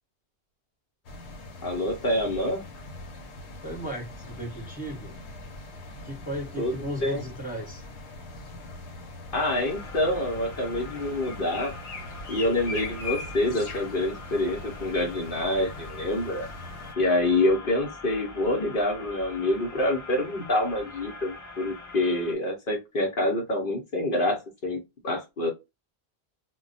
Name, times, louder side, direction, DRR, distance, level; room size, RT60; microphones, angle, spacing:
sound 1, 1.0-16.9, left 2 dB, 85° left, 1.0 m, -41 dB
voice 1, 1.6-2.6 6.6-6.7 7.0-7.2 9.3-11.8 12.3-16.5 17.0-24.8 25.0-25.5, left 1 dB, 60° left, 0 dB, 0.9 m, -26 dB
voice 2, 3.6-5.1 6.0-7.8, equal, 10° right, -2 dB, 0.9 m, -36 dB
sound 2, 9.6-22.3, left 3 dB, 20° left, 0.5 m, -44 dB
2.2 x 2.2 x 3.9 m, 0.23 s
omnidirectional pair, 1.1 m